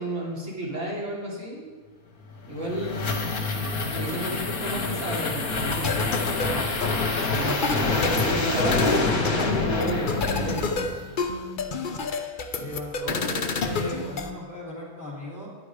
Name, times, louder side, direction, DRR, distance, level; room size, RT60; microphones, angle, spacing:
voice 1, 0.0-1.7 2.5-3.6 3.9-6.1 7.3-10.7, right 1 dB, 55° right, -5 dB, 3.5 m, -31 dB
sound 1, 2.3-11.2, left 3 dB, 80° left, 1.7 m, -27 dB
sound 2, 5.7-14.3, left 4 dB, 45° left, 0.8 m, -29 dB
voice 2, 12.6-15.5, equal, 10° left, -4 dB, 3.6 m, -37 dB
11.0 x 9.7 x 4.9 m, 1.4 s
omnidirectional pair, 1.5 m